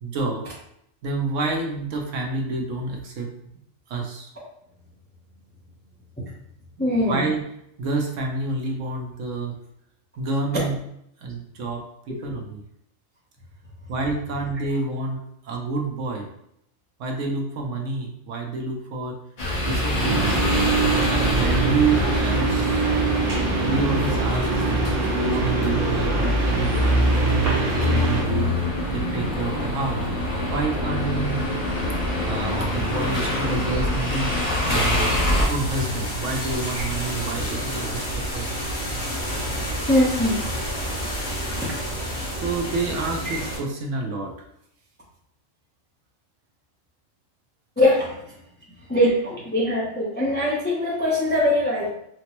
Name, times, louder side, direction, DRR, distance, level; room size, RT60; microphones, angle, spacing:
voice 1, 0.0-0.4 1.0-3.3 3.9-4.3 6.8-7.4 7.8-9.5 10.2-10.8 11.2-12.6 13.9-16.3 17.0-19.2 19.7-20.4 21.4-22.9 23.7-24.6 25.1-28.6 28.9-30.0 30.5-31.4 32.3-34.4 34.7-35.2 35.5-38.6 42.3-44.3, right 3 dB, 70° right, 1 dB, 0.9 m, -28 dB
voice 2, 6.8-7.3 36.7-36.8 39.9-40.4 43.2-43.4 47.8-48.2 48.9-51.9, left 1 dB, 15° left, -5 dB, 0.4 m, -21 dB
sound 1, 19.4-35.5, left 1 dB, 35° left, 0.8 m, -24 dB
sound 2, 20.0-28.2, right 4 dB, 40° right, 0.8 m, -24 dB
sound 3, 34.7-43.6, equal, 80° left, 2.0 m, -29 dB
4.2 x 2.0 x 2.9 m, 0.75 s
omnidirectional pair, 1.4 m